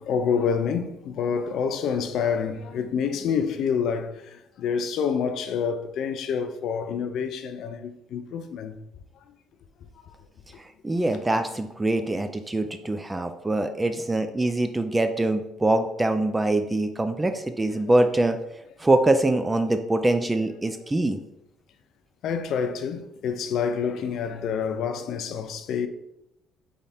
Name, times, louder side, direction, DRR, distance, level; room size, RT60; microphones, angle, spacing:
voice 1, 0.0-8.8 9.3-9.4 10.0-10.1 18.0-18.1 22.2-25.9, left 6 dB, 70° left, 0.4 m, -28 dB
voice 2, 10.8-18.4 18.8-21.2, right 2 dB, 15° right, 0.4 m, -24 dB
3.6 x 3.5 x 4.2 m
supercardioid pair, 75°, 0 cm